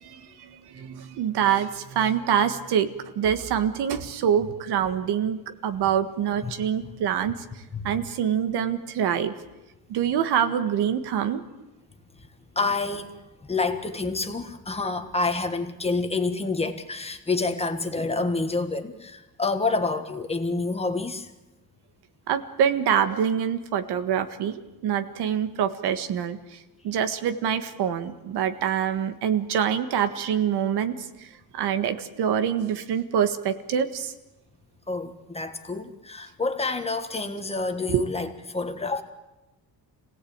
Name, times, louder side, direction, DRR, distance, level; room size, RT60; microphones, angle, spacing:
voice 1, 0.0-2.9 3.2-7.4 7.8-9.3 9.9-11.4 22.3-31.3 31.5-34.1 37.9-38.0, right 8 dB, 85° right, 8 dB, 1.7 m, -25 dB
voice 2, 12.5-21.3 34.9-39.0, left 3 dB, 15° left, 7 dB, 1.6 m, -28 dB
27.5 x 17.5 x 8.8 m, 1.1 s
cardioid pair, 165°, 38 cm